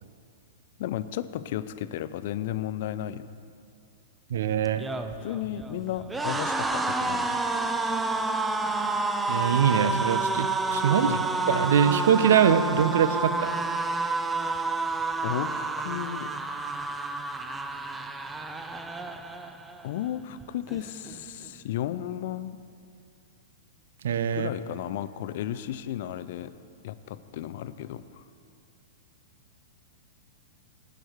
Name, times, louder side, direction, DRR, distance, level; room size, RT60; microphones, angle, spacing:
voice 1, 0.8-3.3 5.2-7.4 11.0-11.2 15.2-16.3 19.8-22.6 24.3-26.5 26.8-28.2, left 11 dB, 55° left, 14 dB, 0.4 m, -34 dB
voice 2, 4.3-4.9 9.3-11.2 11.5-13.5 24.0-24.5, right 8 dB, 65° right, 12 dB, 0.5 m, -23 dB
sound 1, 4.7-19.9 20.2-20.4 20.7-21.5, right 3 dB, 10° right, 0.5 m, -29 dB
10.5 x 7.8 x 4.6 m, 2.4 s
figure-of-eight pair, 105°, 0 cm